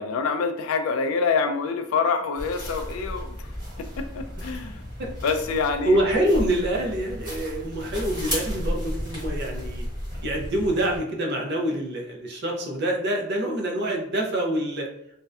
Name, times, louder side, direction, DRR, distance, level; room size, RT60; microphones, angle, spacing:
voice 1, 0.0-3.4 4.0-4.8 5.2-6.0, left 5 dB, 75° left, 7 dB, 0.3 m, -26 dB
sound 1, 2.3-11.0, equal, 20° right, 0.9 m, -33 dB
voice 2, 5.8-9.8 10.2-14.9, right 1 dB, 50° right, 1 dB, 0.5 m, -26 dB
2.5 x 2.1 x 2.3 m, 0.75 s
head